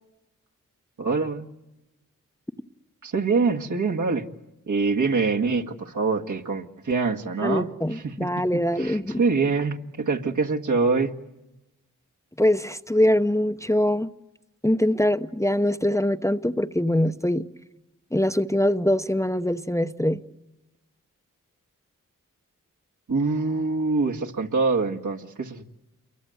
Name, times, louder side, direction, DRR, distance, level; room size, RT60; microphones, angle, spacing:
voice 1, 1.0-1.5 3.0-4.3 4.7-8.3 8.7-11.1 23.1-25.6, right 4 dB, 65° right, 2.0 m, -25 dB
voice 2, 7.4-9.2 12.4-14.1 14.6-17.4 18.1-20.2, left 1 dB, 10° left, 0.9 m, -23 dB
28.5 x 23.5 x 7.9 m
cardioid pair, 60°, 33 cm